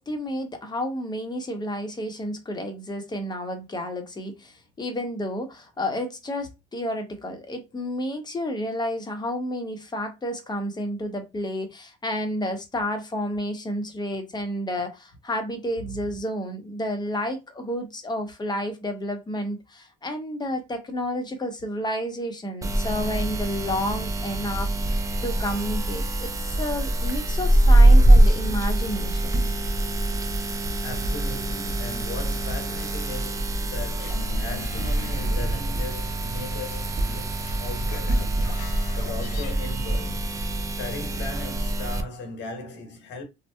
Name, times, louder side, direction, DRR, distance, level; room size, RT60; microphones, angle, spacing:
voice 1, 0.0-29.5, left 1 dB, 20° left, 0.9 m, -31 dB
sound 1, 22.6-42.0, right 1 dB, 15° right, 0.5 m, -23 dB
voice 2, 30.8-38.3 39.0-40.3 40.7-43.3, left 3 dB, 65° left, 1.0 m, -38 dB
sound 2, 34.0-35.4 35.8-35.9 37.4-39.5, left 11 dB, 85° left, 0.4 m, -42 dB
2.6 x 2.1 x 2.3 m
supercardioid pair, 80°, 20 cm